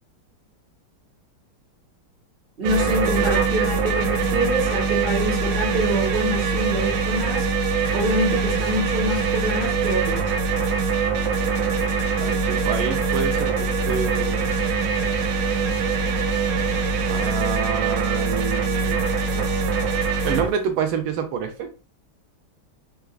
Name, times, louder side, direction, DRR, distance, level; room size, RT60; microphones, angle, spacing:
voice 1, 2.6-7.5 7.9-10.2, equal, 35° right, -2 dB, 1.1 m, -25 dB
sound 1, 2.6-20.5, right 4 dB, 70° right, 1.2 m, -23 dB
voice 2, 12.2-14.5 17.1-19.0 19.3-19.5 20.2-21.7, right 7 dB, 85° right, 6 dB, 1.6 m, -28 dB
4.4 x 2.4 x 2.3 m, 0.32 s
omnidirectional pair, 2.3 m